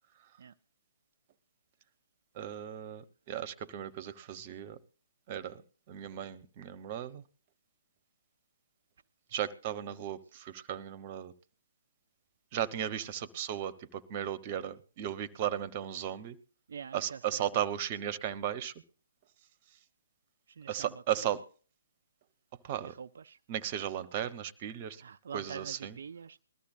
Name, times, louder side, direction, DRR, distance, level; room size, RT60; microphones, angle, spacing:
voice 1, 2.4-3.0 3.3-4.8 5.3-5.6 5.9-7.2 9.3-11.3 12.5-16.4 16.9-18.7 20.7-21.4 22.6-22.9 23.5-25.0 25.3-25.9, right 10 dB, 35° right, 1.1 m, -35 dB
voice 2, 16.7-17.4 20.5-21.3 22.8-23.4 25.0-26.4, right 7 dB, 60° right, 0.5 m, -46 dB
21.0 x 13.5 x 2.7 m
figure-of-eight pair, 135°, 0 cm